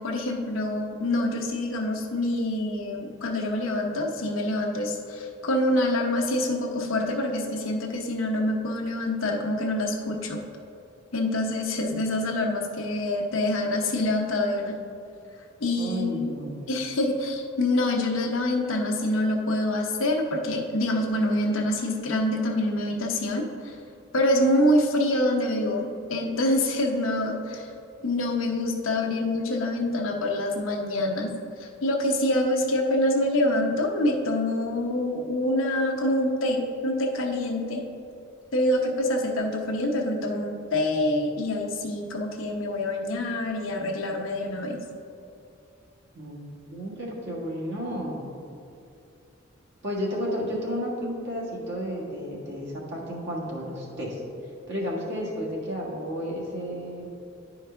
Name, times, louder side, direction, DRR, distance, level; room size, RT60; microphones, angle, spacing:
voice 1, 0.0-10.4 11.1-14.8 15.6-16.3 16.7-23.8 24.1-27.7 28.0-31.3 31.6-37.8 38.5-44.8, left 1 dB, 75° left, 1 dB, 0.9 m, -26 dB
voice 2, 15.8-16.6 46.1-46.4 46.7-48.3 49.8-54.2 54.7-57.1, equal, 60° right, -5 dB, 1.7 m, -32 dB
11.0 x 4.8 x 3.4 m, 2.6 s
head